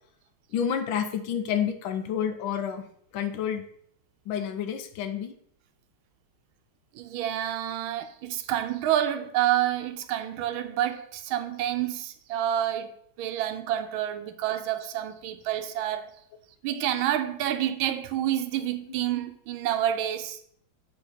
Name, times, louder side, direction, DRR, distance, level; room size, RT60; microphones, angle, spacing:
voice 1, 0.5-2.9 3.1-3.7 4.2-5.4, left 8 dB, 75° left, 1.4 m, -29 dB
voice 2, 6.9-12.9 13.2-16.1 16.6-20.4, right 11 dB, 80° right, 1.4 m, -28 dB
7.9 x 4.5 x 4.0 m
omnidirectional pair, 2.3 m